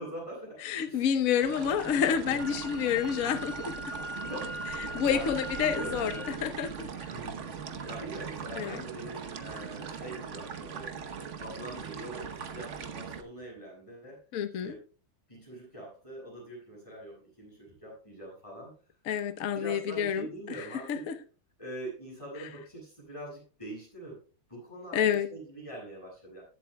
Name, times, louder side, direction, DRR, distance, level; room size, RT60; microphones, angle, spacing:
voice 1, 0.0-0.6 0.9-1.1 2.3-2.6 3.2-3.5 4.2-5.3 5.6-6.5 7.1-7.5 7.8-11.0 11.4-14.2 14.6-14.7 15.3-18.7 19.5-21.0 21.6-24.2 24.5-25.0 25.3-26.4, right 1 dB, 15° left, 7.1 m, -43 dB
voice 2, 0.6-3.7 4.9-6.9 8.6-8.8 14.3-14.8 19.1-20.3 20.6-21.2 24.9-25.3, left 8 dB, 55° left, 1.2 m, -29 dB
sound 1, 1.4-13.2, right 6 dB, 50° right, 1.0 m, -40 dB
Wind instrument woodwind instrument, 2.4-6.4, equal, 70° right, 3.7 m, -41 dB
21.0 x 8.1 x 2.2 m
omnidirectional pair, 2.1 m